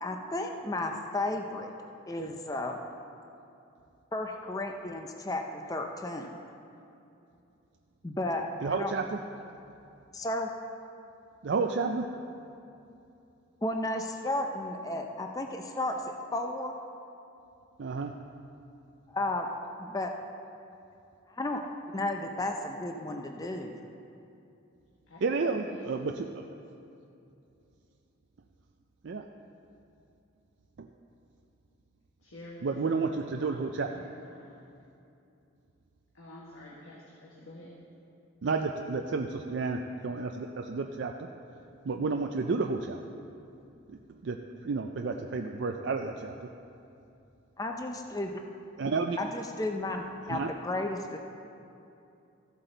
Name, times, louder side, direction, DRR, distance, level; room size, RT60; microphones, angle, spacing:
voice 1, 0.0-1.7 2.1-2.8 4.1-6.4 8.0-8.9 10.1-10.5 13.6-16.8 19.1-19.5 19.8-20.1 21.3-21.6 21.9-23.8 47.6-48.4 49.2-51.2, left 2 dB, 15° left, 3 dB, 0.5 m, -33 dB
voice 2, 8.6-9.2 11.4-12.0 17.8-18.1 25.2-26.4 29.0-29.2 30.8-30.9 32.6-33.9 38.4-41.3 41.9-43.0 43.9-44.4 44.6-46.5 48.8-49.2 50.3-50.5, right 4 dB, 60° right, 3 dB, 0.4 m, -31 dB
voice 3, 25.1-26.0 32.2-34.7 36.1-37.7 49.1-49.2, left 1 dB, 85° left, -4 dB, 1.4 m, -50 dB
14.5 x 8.2 x 3.9 m, 2.7 s
head